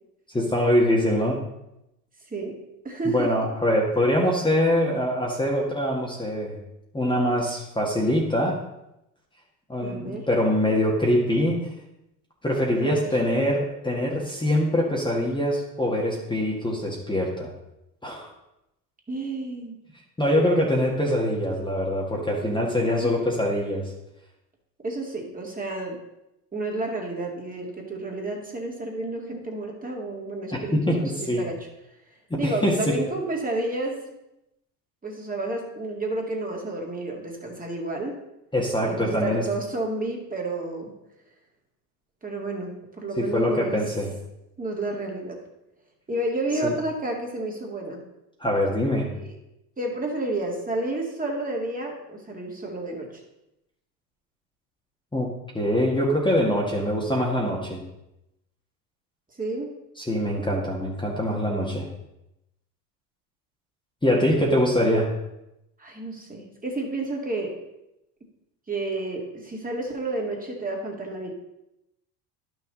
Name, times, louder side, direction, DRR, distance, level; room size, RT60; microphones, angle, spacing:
voice 1, 0.3-1.4 3.1-6.6 6.9-8.6 9.7-11.6 12.4-17.5 18.0-18.3 20.2-23.9 30.7-31.4 32.3-33.0 38.5-39.4 43.2-44.1 46.6-46.7 48.4-49.1 55.1-57.8 60.0-61.9 64.0-65.1, equal, 10° left, -3 dB, 1.7 m, -24 dB
voice 2, 2.3-3.3 9.8-10.3 12.8-13.1 19.1-19.8 22.9-23.1 24.8-26.0 26.5-31.6 32.4-34.1 35.0-38.2 38.8-40.9 42.2-43.8 44.6-45.4 46.1-48.0 49.2-49.4 49.8-53.2 59.4-59.7 64.4-64.5 65.8-67.6 68.7-71.3, right 2 dB, 15° right, 0 dB, 2.2 m, -31 dB
11.0 x 6.3 x 4.0 m, 0.89 s
hypercardioid pair, 85°, 48 cm